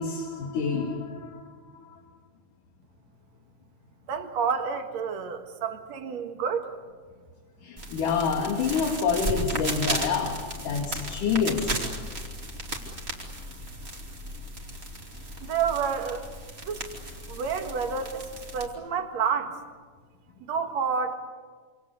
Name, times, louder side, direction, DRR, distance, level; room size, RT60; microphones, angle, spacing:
voice 1, 0.0-2.0 7.6-11.8, left 5 dB, 75° left, 2 dB, 3.6 m, -28 dB
voice 2, 4.1-6.7 15.4-16.3 16.7-16.8 17.3-18.3 18.5-19.5 20.5-21.2, right 6 dB, 60° right, 6 dB, 2.8 m, -29 dB
sound 1, 7.8-18.7, right 1 dB, 20° right, 2.6 m, -35 dB
26.5 x 26.0 x 8.2 m, 1.5 s
omnidirectional pair, 3.7 m